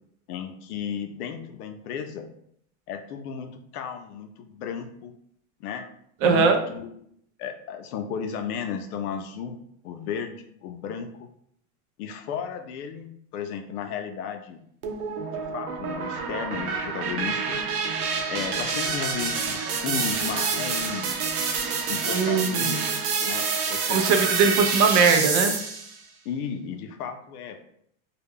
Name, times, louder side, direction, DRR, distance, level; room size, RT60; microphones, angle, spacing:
voice 1, 0.3-2.3 2.9-5.1 5.6-5.9 6.2-6.9 7.4-9.6 9.8-11.1 12.0-14.6 15.3-17.6 18.3-21.4 21.9-22.8 23.3-24.2 26.3-27.6, left 7 dB, 80° left, 7 dB, 0.6 m, -34 dB
voice 2, 6.2-6.6 22.1-22.7 23.9-25.6, right 5 dB, 45° right, 5 dB, 0.4 m, -20 dB
sound 1, 14.8-25.9, right 5 dB, 80° right, 0.7 m, -28 dB
2.3 x 2.0 x 3.4 m, 0.69 s
supercardioid pair, 120°, 44 cm